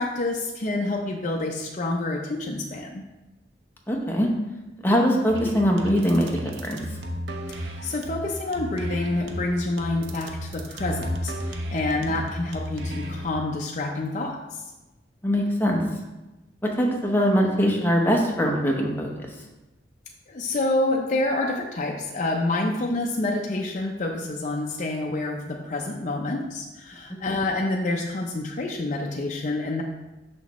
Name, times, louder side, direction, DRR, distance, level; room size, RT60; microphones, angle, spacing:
voice 1, 0.0-3.0 7.6-14.6 20.3-29.8, left 2 dB, 40° left, -1 dB, 0.5 m, -28 dB
voice 2, 3.9-4.3 4.8-6.3 6.6-6.8 15.2-15.8 16.6-19.1 27.3-27.4, equal, 10° left, -1 dB, 0.8 m, -22 dB
sound 1, 5.3-13.3, equal, 70° right, 0.7 m, -33 dB
6.3 x 5.8 x 3.1 m, 1.1 s
head